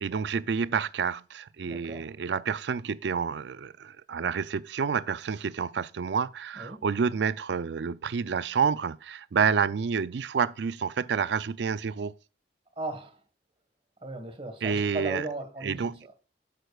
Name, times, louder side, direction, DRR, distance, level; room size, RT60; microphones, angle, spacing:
voice 1, 0.0-12.1 14.6-15.3 15.6-16.0, right 6 dB, 75° right, 0.4 m, -29 dB
voice 2, 1.6-2.1 6.5-6.8 12.8-13.2 14.0-16.1, right 2 dB, 30° right, 1.5 m, -37 dB
11.0 x 7.9 x 2.4 m
head